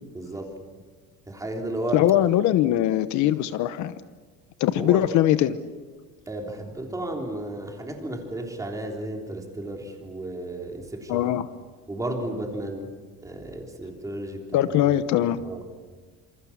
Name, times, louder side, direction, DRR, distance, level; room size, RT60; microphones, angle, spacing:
voice 1, 0.1-0.5 1.3-2.0 4.8-5.0 6.3-11.3 11.9-15.0 15.4-15.6, right 1 dB, 10° right, 2 dB, 3.5 m, -33 dB
voice 2, 1.9-3.9 4.6-5.6 11.1-11.5 14.5-15.4, left 12 dB, 55° left, 13 dB, 1.0 m, -21 dB
27.5 x 27.0 x 7.3 m, 1.4 s
cardioid pair, 170°, 35 cm